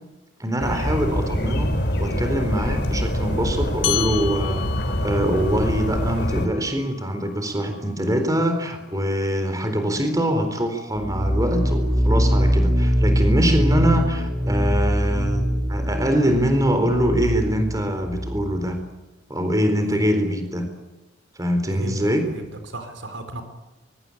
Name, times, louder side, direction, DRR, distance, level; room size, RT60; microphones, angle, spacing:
voice 1, 0.4-18.8 19.3-20.7 21.4-22.3, equal, 20° right, 7 dB, 4.1 m, -23 dB
sound 1, 0.6-6.5, equal, 55° left, 3.8 m, -25 dB
sound 2, 3.8-8.6, left 13 dB, 80° left, 1.8 m, -33 dB
sound 3, 11.0-18.6, equal, 50° right, 3.9 m, -22 dB
voice 2, 22.3-23.4, right 1 dB, 75° right, 8 dB, 4.3 m, -34 dB
24.0 x 23.0 x 8.6 m, 1.1 s
head